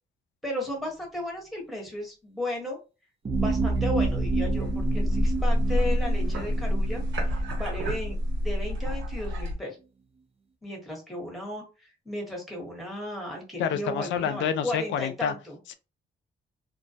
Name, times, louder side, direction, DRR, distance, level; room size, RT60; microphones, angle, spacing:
voice 1, 0.4-2.8 3.4-9.8 10.6-15.6, left 1 dB, ahead, 1.1 m, -35 dB
sound 1, 3.2-8.8 9.3-9.4, right 4 dB, 30° right, 0.5 m, -31 dB
sound 2, 3.3-9.6, equal, 70° right, 1.0 m, -28 dB
voice 2, 13.6-15.3 15.7-15.8, left 8 dB, 70° left, 0.4 m, -28 dB
2.2 x 2.1 x 2.7 m
cardioid pair, 90°, 20 cm